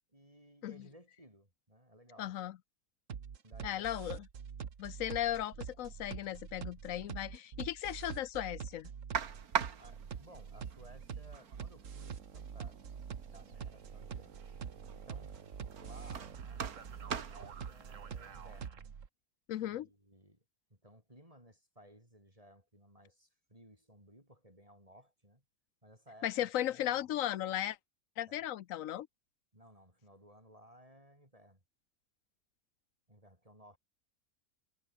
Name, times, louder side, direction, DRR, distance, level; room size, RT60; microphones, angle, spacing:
voice 1, 0.0-2.4 3.4-3.9 9.8-12.8 13.2-14.4 14.9-15.4 15.8-18.9 19.6-20.4 20.7-25.4 25.8-27.1 28.3-28.5 29.5-31.6 33.1-33.8, equal, 25° right, 8.2 m, -59 dB
voice 2, 2.2-2.6 3.6-4.3 4.8-8.9 19.5-19.9 26.2-27.8 28.2-29.1, left 12 dB, 70° left, 1.0 m, -36 dB
sound 1, 3.1-19.1, right 7 dB, 60° right, 1.7 m, -45 dB
sound 2, 9.1-18.7, right 7 dB, 85° right, 2.0 m, -43 dB
omnidirectional pair, 1.5 m